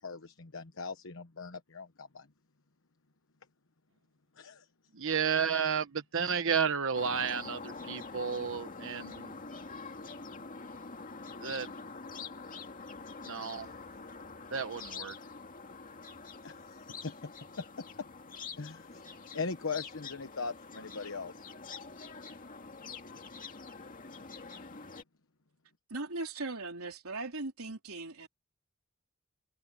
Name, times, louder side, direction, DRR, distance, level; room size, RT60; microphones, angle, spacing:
voice 1, 0.0-2.2 4.4-4.6 16.4-16.5 17.0-17.1 18.6-18.8 19.3-21.3, left 4 dB, 65° left, 1.1 m, -39 dB
voice 2, 5.0-9.3 11.4-11.7 13.2-13.7 14.5-15.1, right 6 dB, 65° right, 1.0 m, -32 dB
sound 1, 6.9-25.0, left 4 dB, 40° left, 2.2 m, -46 dB
voice 3, 25.9-28.3, right 3 dB, 85° right, 3.9 m, -39 dB
head